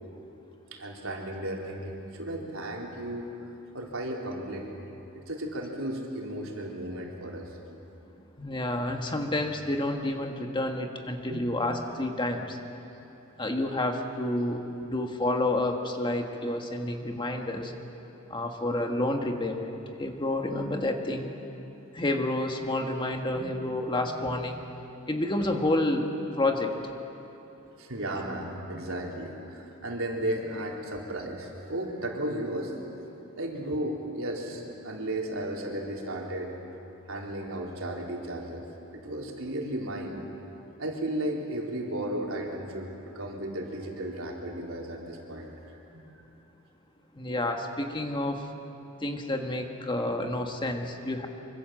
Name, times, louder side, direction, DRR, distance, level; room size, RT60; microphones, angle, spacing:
voice 1, 0.7-3.3 3.7-4.7 5.3-7.5 11.3-11.5 23.4-23.5 24.1-24.4 27.8-32.7 33.0-33.1 33.3-36.5 37.1-38.6 38.9-40.2 40.8-42.9 43.1-45.5 45.9-46.0, right 1 dB, 75° right, -1 dB, 3.9 m, -34 dB
voice 2, 8.4-12.6 13.4-17.7 18.3-19.7 20.0-21.3 21.9-24.6 25.1-26.1 26.4-26.7 47.1-48.5 49.0-51.3, left 1 dB, 25° left, 3 dB, 1.6 m, -29 dB
25.0 x 24.5 x 7.7 m, 2.9 s
head